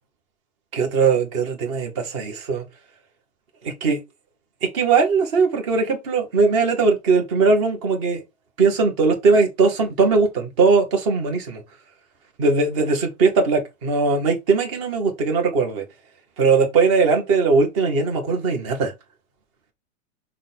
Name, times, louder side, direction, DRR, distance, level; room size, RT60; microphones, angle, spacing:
voice 1, 0.7-2.6 3.6-4.0 4.6-8.2 8.6-11.6 12.4-15.8 16.4-18.9, right 4 dB, 20° right, 0.8 m, -20 dB
5.8 x 2.2 x 4.0 m
supercardioid pair, 180°, 40 cm